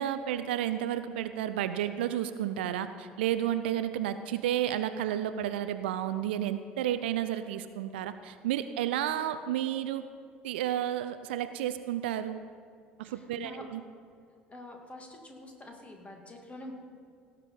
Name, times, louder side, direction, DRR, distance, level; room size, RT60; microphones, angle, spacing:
voice 1, 0.0-10.1 10.4-12.4 13.0-13.8, right 11 dB, 70° right, 11 dB, 0.5 m, -31 dB
voice 2, 13.0-13.6 14.5-16.7, left 2 dB, 20° left, 2 dB, 2.3 m, -46 dB
17.5 x 6.7 x 5.5 m, 2.2 s
figure-of-eight pair, 60°, 6 cm